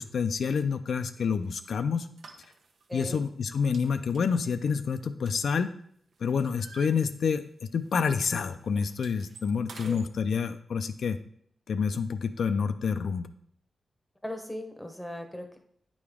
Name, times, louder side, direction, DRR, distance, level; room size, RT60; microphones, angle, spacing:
voice 1, 0.0-2.1 2.9-5.7 6.2-7.5 7.7-11.2 11.7-13.3, left 6 dB, 70° left, 8 dB, 0.4 m, -28 dB
sound 1, 1.4-1.7 2.2-2.9 3.2-3.5 3.7-5.8 6.1-7.6 7.9-8.1 8.3-10.1, right 4 dB, 80° right, 0.7 m, -50 dB
voice 2, 2.9-3.3 9.8-10.0 14.2-15.6, left 1 dB, 5° left, 5 dB, 0.8 m, -38 dB
8.9 x 5.0 x 3.5 m, 0.67 s
wide cardioid pair, 150°, 0 cm